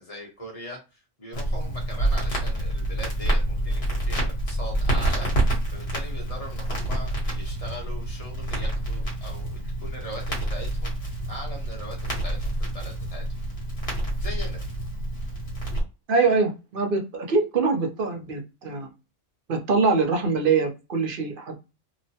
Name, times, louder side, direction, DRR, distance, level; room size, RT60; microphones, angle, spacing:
voice 1, 0.0-13.2 14.2-14.6, equal, 30° left, 0 dB, 0.9 m, -40 dB
Crackle, 1.3-15.8, right 1 dB, 55° left, 1.3 m, -27 dB
voice 2, 16.1-18.9 19.5-21.6, right 4 dB, 55° right, 3 dB, 0.7 m, -23 dB
2.9 x 2.1 x 2.7 m, 0.28 s
omnidirectional pair, 1.3 m